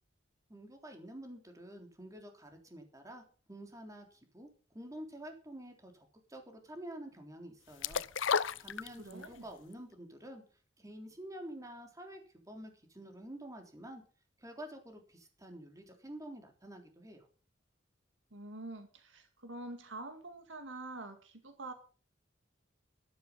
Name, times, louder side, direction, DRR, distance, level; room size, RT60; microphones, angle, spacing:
voice 1, 0.5-4.5 4.7-8.0 8.6-10.4 10.8-14.0 14.4-17.3, right 1 dB, 20° right, 3 dB, 3.5 m, -48 dB
sound 1, 7.8-9.4 9.7-9.8, left 6 dB, 75° left, 0.7 m, -32 dB
voice 2, 9.0-9.4 18.3-21.7, right 2 dB, 75° right, 7 dB, 2.2 m, -46 dB
13.0 x 12.0 x 5.4 m, 0.38 s
head